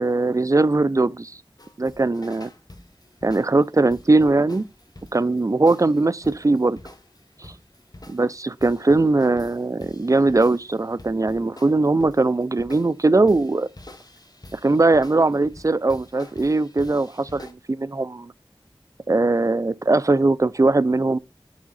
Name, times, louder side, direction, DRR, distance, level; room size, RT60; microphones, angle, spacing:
voice 1, 0.0-1.3 1.8-2.5 3.2-4.6 5.1-6.8 7.4-7.5 8.1-13.7 14.5-18.3 19.1-21.2, right 2 dB, 35° right, 0.4 m, -20 dB
sound 1, 1.6-17.5, left 1 dB, 45° left, 1.1 m, -46 dB
6.1 x 4.8 x 3.9 m
wide cardioid pair, 45°, 10 cm